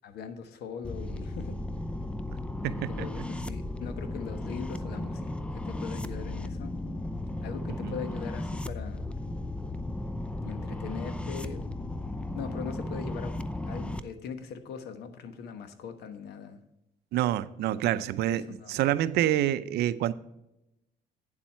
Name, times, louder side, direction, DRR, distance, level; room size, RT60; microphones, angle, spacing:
voice 1, 0.0-1.6 2.6-6.7 7.4-9.1 10.4-11.7 12.4-13.4 13.7-16.6 18.3-18.8, left 6 dB, 75° left, 1.2 m, -41 dB
sound 1, 0.8-14.0, left 1 dB, 5° left, 0.5 m, -35 dB
voice 2, 2.6-3.1 7.8-8.0 17.1-18.4 18.7-20.1, right 13 dB, 75° right, 0.5 m, -27 dB
9.0 x 7.3 x 4.5 m
cardioid pair, 110°, 17 cm